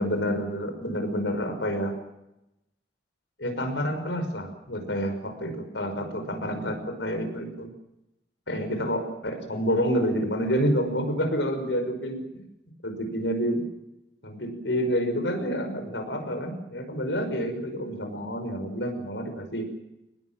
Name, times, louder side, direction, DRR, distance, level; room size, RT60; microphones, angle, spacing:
voice 1, 0.0-1.9 3.4-7.7 8.5-12.4 12.8-13.7 14.2-19.7, equal, 80° left, 7 dB, 5.8 m, -28 dB
25.0 x 20.0 x 7.6 m, 0.90 s
head